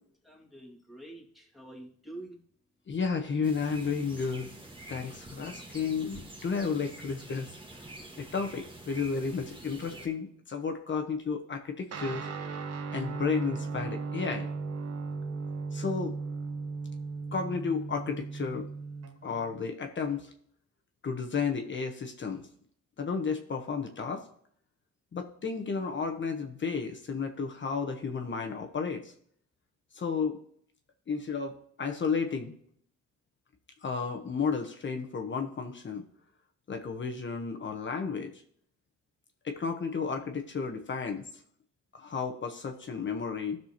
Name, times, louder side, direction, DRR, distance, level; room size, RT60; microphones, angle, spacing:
voice 1, 0.2-2.4, right 1 dB, ahead, -2 dB, 2.2 m, -47 dB
voice 2, 2.9-4.5 4.9-7.5 8.2-12.3 12.9-14.5 15.7-16.1 17.3-18.7 19.2-20.3 21.0-22.5 23.0-24.3 25.1-29.1 29.9-30.4 31.1-32.5 33.8-36.0 36.7-38.3 39.4-41.2 41.9-43.6, left 5 dB, 40° left, 5 dB, 1.1 m, -32 dB
sound 1, 3.4-10.1, right 1 dB, 15° right, 1.5 m, -47 dB
Guitar, 11.9-19.6, right 4 dB, 55° right, 1.2 m, -37 dB
15.0 x 6.1 x 2.9 m, 0.63 s
cardioid pair, 90°, 30 cm